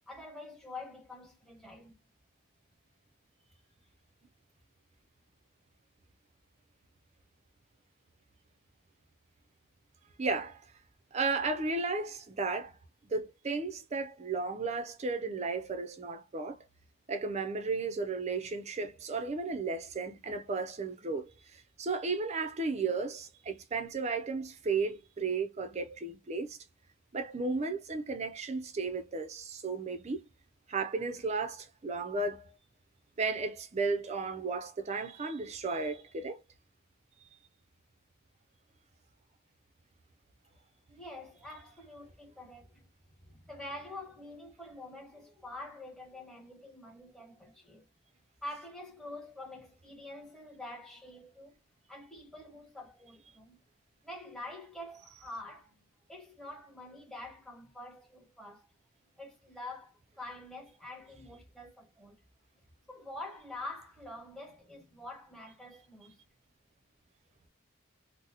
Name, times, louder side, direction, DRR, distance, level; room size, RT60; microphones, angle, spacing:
voice 1, 0.1-1.9 40.9-47.9 48.4-51.6 51.9-53.6 54.0-55.8 56.1-58.7 59.2-62.2 62.9-66.2, left 2 dB, ahead, 1.0 m, -46 dB
voice 2, 10.2-10.6 11.1-12.8 13.1-16.6 17.1-26.6 27.1-30.2 30.7-32.4 33.2-36.4, right 4 dB, 30° right, 0.4 m, -34 dB
3.8 x 2.0 x 2.7 m
head